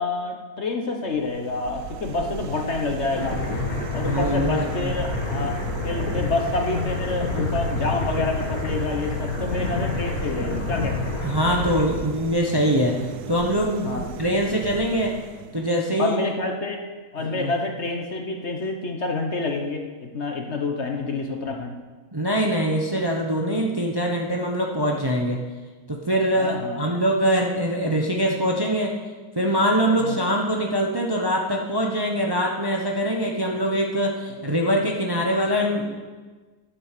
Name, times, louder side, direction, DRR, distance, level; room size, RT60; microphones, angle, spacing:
voice 1, 0.0-3.4 3.9-5.6 5.8-11.1 13.8-14.1 16.0-16.8 17.1-21.7 26.4-26.9 30.0-30.2, left 3 dB, 50° left, 3 dB, 1.4 m, -28 dB
sound 1, 1.1-15.8, right 9 dB, 80° right, 1.2 m, -36 dB
sound 2, 3.1-11.9, left 3 dB, 65° left, 2.1 m, -28 dB
voice 2, 4.0-4.9 11.2-13.0 13.3-15.2 15.5-16.3 17.3-17.5 22.1-25.4 25.9-29.0 29.3-36.0, equal, 20° right, 0 dB, 0.9 m, -23 dB
11.5 x 7.7 x 6.8 m, 1.3 s
omnidirectional pair, 1.7 m